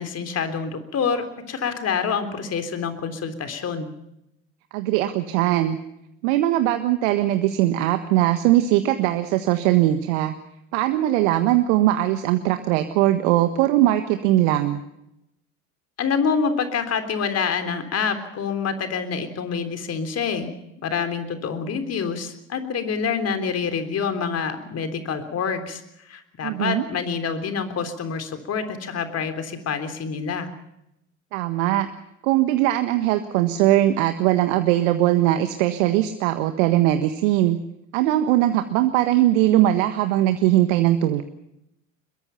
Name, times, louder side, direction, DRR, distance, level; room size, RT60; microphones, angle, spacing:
voice 1, 0.0-3.9 16.0-20.5 20.8-30.5, left 6 dB, 40° left, 9 dB, 3.6 m, -27 dB
voice 2, 4.7-5.8 6.2-10.3 10.7-14.8 26.4-26.8 31.3-31.9 32.2-37.6 37.9-41.2, right 14 dB, 65° right, 8 dB, 1.5 m, -20 dB
23.0 x 22.0 x 5.8 m, 0.83 s
hypercardioid pair, 70°, 39 cm